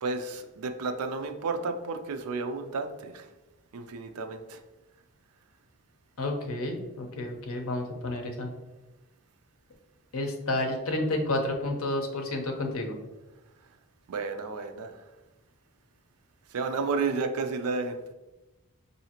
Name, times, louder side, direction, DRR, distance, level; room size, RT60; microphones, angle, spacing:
voice 1, 0.0-3.3 3.7-4.6 14.1-14.9 16.5-18.0, right 4 dB, 75° right, 7 dB, 0.4 m, -32 dB
voice 2, 6.2-8.5 10.1-12.9, left 2 dB, 65° left, 3 dB, 0.7 m, -30 dB
4.8 x 2.7 x 2.9 m, 1.1 s
head